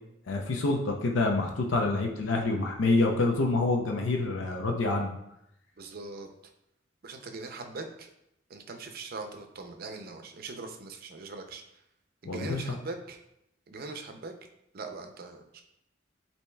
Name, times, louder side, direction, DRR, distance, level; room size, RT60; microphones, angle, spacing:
voice 1, 0.3-5.1 12.2-12.6, left 3 dB, 85° left, 1 dB, 0.6 m, -27 dB
voice 2, 5.8-6.3 7.0-8.1 8.5-11.6 12.2-13.2 13.7-14.3 14.7-15.6, right 3 dB, 50° right, 5 dB, 0.5 m, -41 dB
8.3 x 2.8 x 2.3 m, 0.81 s
head